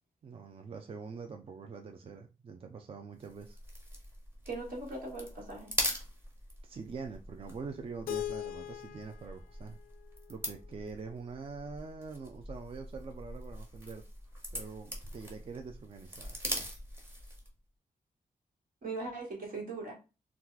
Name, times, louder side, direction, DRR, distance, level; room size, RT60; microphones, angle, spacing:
voice 1, 0.2-3.6 6.6-9.8 10.3-14.0 14.5-16.8, right 5 dB, 40° right, 5 dB, 0.4 m, -44 dB
sound 1, 3.2-17.6, equal, 15° right, 1.0 m, -42 dB
voice 2, 4.4-5.7 18.8-19.9, right 3 dB, 70° right, -2 dB, 1.5 m, -39 dB
Keyboard (musical), 8.1-11.0, left 12 dB, 80° left, 0.4 m, -41 dB
2.9 x 2.4 x 3.7 m, 0.31 s
wide cardioid pair, 125°, 15 cm